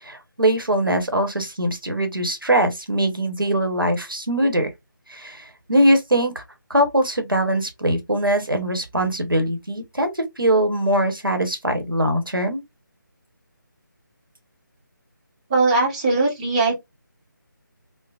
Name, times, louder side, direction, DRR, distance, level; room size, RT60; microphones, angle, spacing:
voice 1, 0.0-4.7 5.1-6.4 6.7-12.6, right 1 dB, 85° right, 0.9 m, -22 dB
voice 2, 15.5-16.8, right 3 dB, 20° right, 0.8 m, -20 dB
3.2 x 2.0 x 2.3 m
figure-of-eight pair, 155°, 11 cm